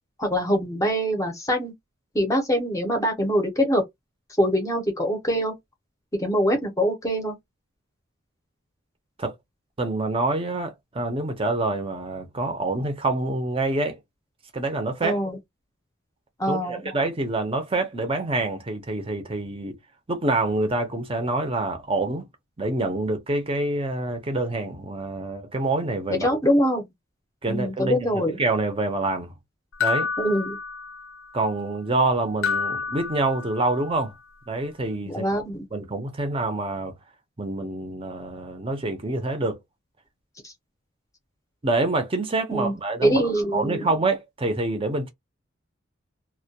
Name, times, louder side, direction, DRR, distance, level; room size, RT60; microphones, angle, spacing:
voice 1, 0.2-1.7 2.1-3.8 4.4-5.5 6.2-7.3 15.0-15.4 16.4-16.9 26.1-26.8 27.5-28.4 30.2-30.6 35.0-35.7 40.4-40.5 42.5-42.7 43.0-43.9, equal, 15° left, 0.7 m, -24 dB
voice 2, 9.8-14.0 14.5-15.2 16.4-19.8 20.1-22.3 22.6-26.3 27.4-29.3 29.8-30.1 31.3-34.1 34.5-35.3 35.7-36.9 37.4-39.6 41.6-43.2 43.5-45.1, right 2 dB, 25° right, 0.6 m, -26 dB
sound 1, 29.8-31.3 32.4-33.9, left 6 dB, 85° left, 0.7 m, -29 dB
2.2 x 2.2 x 2.7 m
head